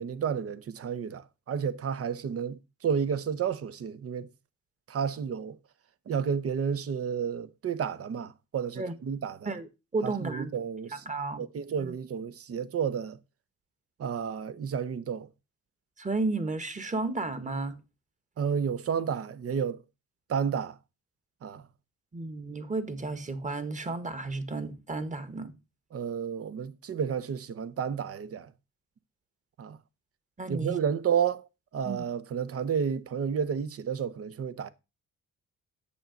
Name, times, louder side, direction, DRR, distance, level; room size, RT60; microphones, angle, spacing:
voice 1, 0.0-4.3 4.9-5.6 6.1-9.5 10.0-11.0 11.4-13.2 14.0-15.3 18.4-19.8 20.3-20.8 21.4-21.7 25.9-28.5 29.6-29.8 30.5-31.5 31.7-34.7, right 7 dB, 50° right, 1.0 m, -31 dB
voice 2, 9.4-10.5 10.9-11.4 11.8-11.9 16.0-17.8 22.1-25.5 30.4-30.8 31.8-32.0, right 3 dB, 25° right, 1.6 m, -33 dB
8.6 x 7.1 x 5.2 m
cardioid pair, 90°, 30 cm